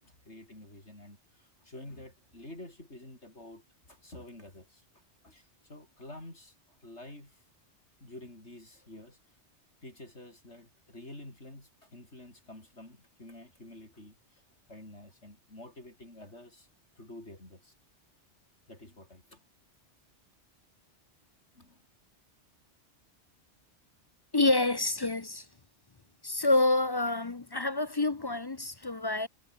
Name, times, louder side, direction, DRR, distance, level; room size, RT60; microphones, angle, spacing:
voice 1, 0.0-3.6 3.9-4.8 5.2-7.4 8.0-9.2 9.8-14.4 14.7-16.7 17.0-17.7 18.7-19.4 21.5-21.9, left 1 dB, 75° left, 8.0 m, -49 dB
voice 2, 24.3-25.5 26.2-29.3, left 2 dB, 25° left, 0.5 m, -27 dB
omnidirectional pair, 1.2 m